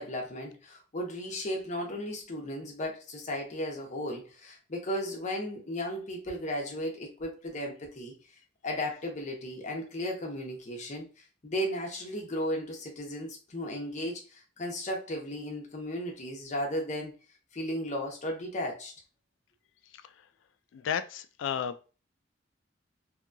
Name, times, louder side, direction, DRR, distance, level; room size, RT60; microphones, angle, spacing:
voice 1, 0.0-8.1 8.6-11.1 11.4-17.1 17.5-18.9, equal, 40° left, 0.7 m, -35 dB
voice 2, 19.9-20.3 20.7-21.8, left 8 dB, 75° left, 0.3 m, -34 dB
2.7 x 2.3 x 2.5 m
head